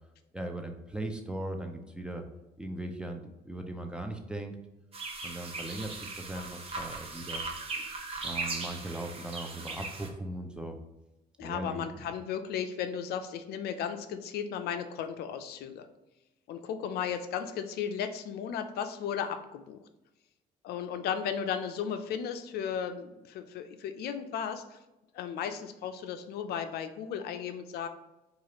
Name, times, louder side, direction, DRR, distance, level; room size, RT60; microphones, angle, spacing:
voice 1, 0.3-2.2 2.6-4.6 5.2-7.4 7.7-7.9 8.2-10.8 11.4-11.9, right 1 dB, 5° right, 4 dB, 0.5 m, -39 dB
sound 1, 4.9-10.1, right 3 dB, 35° right, 0.9 m, -38 dB
voice 2, 11.4-15.9 16.5-19.8 20.6-24.8 25.1-27.9, left 8 dB, 70° left, 8 dB, 0.4 m, -35 dB
4.7 x 2.4 x 2.9 m, 0.98 s
cardioid pair, 110°, 17 cm